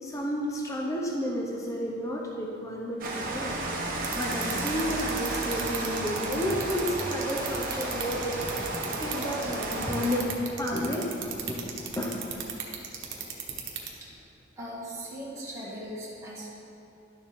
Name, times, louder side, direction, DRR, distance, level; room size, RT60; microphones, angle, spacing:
voice 1, 0.0-3.6 4.1-10.3 10.6-11.2 11.5-11.7 12.0-12.2, equal, 15° left, -2 dB, 0.7 m, -31 dB
Rain, 3.0-10.2, right 2 dB, 45° right, 1.0 m, -33 dB
sound 1, 4.0-13.9, right 9 dB, 65° right, 1.2 m, -34 dB
voice 2, 14.6-16.5, equal, 15° right, -9 dB, 1.9 m, -39 dB
11.0 x 6.9 x 3.6 m, 2.8 s
head